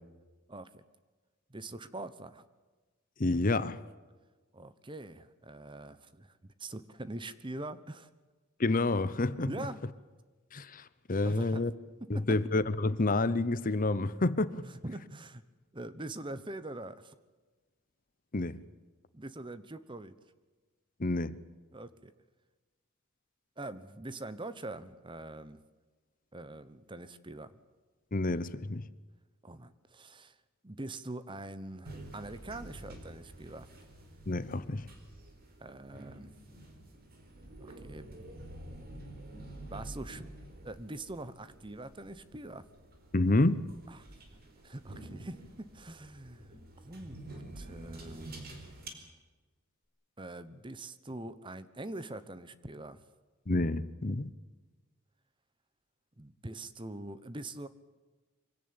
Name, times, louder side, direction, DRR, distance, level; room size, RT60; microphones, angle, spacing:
voice 1, 0.5-0.8 1.5-2.4 4.5-8.1 9.5-9.8 11.2-11.7 12.0-12.4 14.6-15.4 15.7-17.1 19.1-20.2 21.7-22.1 23.6-25.6 26.3-27.6 29.4-30.4 30.6-33.7 35.6-36.3 37.6-38.2 39.4-40.2 40.6-42.7 43.9-44.1 44.6-46.6 46.8-49.1 50.2-53.0 56.2-57.7, right 2 dB, 20° right, 1.0 m, -44 dB
voice 2, 3.2-3.8 8.6-9.7 10.5-11.7 12.1-14.6 18.3-18.6 21.0-21.4 28.1-28.8 34.3-34.9 43.1-43.6 53.5-54.3, left 2 dB, 40° left, 0.8 m, -29 dB
sound 1, 31.8-48.9, right 1 dB, 45° right, 4.7 m, -49 dB
24.5 x 17.5 x 8.9 m
head